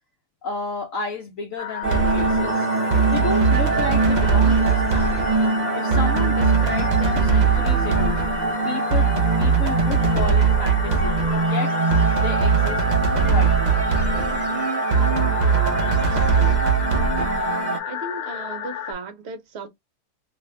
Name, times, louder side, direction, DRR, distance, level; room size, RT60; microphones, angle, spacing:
voice 1, 0.4-2.7 3.1-5.2 5.7-8.2 8.6-9.1 9.4-11.8 12.1-12.8 13.3-13.8 16.0-16.1, left 5 dB, 65° left, 1.1 m, -32 dB
sound 1, 1.6-18.9, left 8 dB, 90° left, 1.2 m, -32 dB
sound 2, 1.8-17.8, right 5 dB, 85° right, 0.4 m, -20 dB
voice 2, 15.4-16.6 17.1-19.7, right 3 dB, 60° right, 0.7 m, -37 dB
2.7 x 2.5 x 3.2 m
omnidirectional pair, 1.7 m